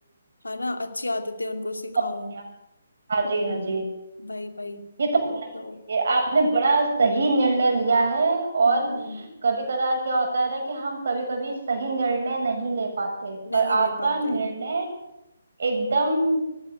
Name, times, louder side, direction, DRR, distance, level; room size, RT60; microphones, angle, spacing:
voice 1, 0.4-2.3 3.2-3.9 4.2-4.9 5.5-5.8 8.7-9.2 13.5-14.5, left 2 dB, 85° left, 7 dB, 2.6 m, -33 dB
voice 2, 3.1-3.9 5.0-5.5 5.9-14.9 15.6-16.4, right 3 dB, 55° right, 3 dB, 7.4 m, -24 dB
20.0 x 16.5 x 8.0 m, 0.91 s
figure-of-eight pair, 140°, 0 cm